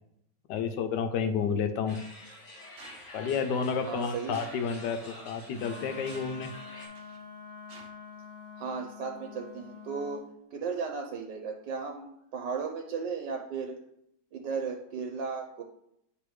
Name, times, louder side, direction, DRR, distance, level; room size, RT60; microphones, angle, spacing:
voice 1, 0.5-2.0 3.1-6.5, left 6 dB, 80° left, 8 dB, 1.2 m, -30 dB
sound 1, 1.9-6.9, left 1 dB, 40° left, 2.0 m, -47 dB
sound 2, 2.8-3.0 4.3-4.6 5.4-5.5 6.1-6.4 6.9-7.2 7.7-7.9, right 4 dB, 60° right, 0.9 m, -51 dB
voice 2, 3.9-4.3 8.6-10.2 10.5-13.7 14.3-15.6, right 5 dB, 85° right, 2 dB, 1.3 m, -35 dB
Wind instrument woodwind instrument, 5.5-10.2, left 5 dB, 40° right, 1.2 m, -46 dB
9.2 x 3.3 x 3.2 m, 0.77 s
omnidirectional pair, 1.9 m